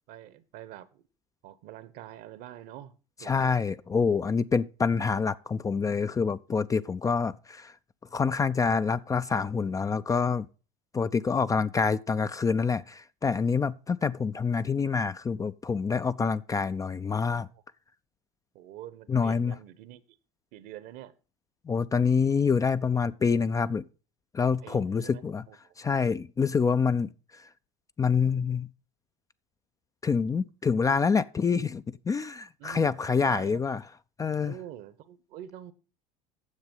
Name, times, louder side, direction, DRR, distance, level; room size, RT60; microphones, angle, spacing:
voice 1, 0.1-1.1 1.4-2.9 3.2-3.6 13.9-14.0 17.5-17.6 18.5-20.2 20.5-21.1 24.6-25.7 32.6-33.6 34.4-35.7, right 12 dB, 55° right, 1.1 m, -46 dB
voice 2, 3.3-7.7 8.1-10.5 10.9-17.5 19.1-19.5 21.7-23.8 24.3-25.4 25.8-27.1 28.0-28.7 30.0-33.8 34.2-34.5, left 5 dB, 20° left, 0.4 m, -26 dB
9.7 x 7.3 x 5.4 m
hypercardioid pair, 70°, 18 cm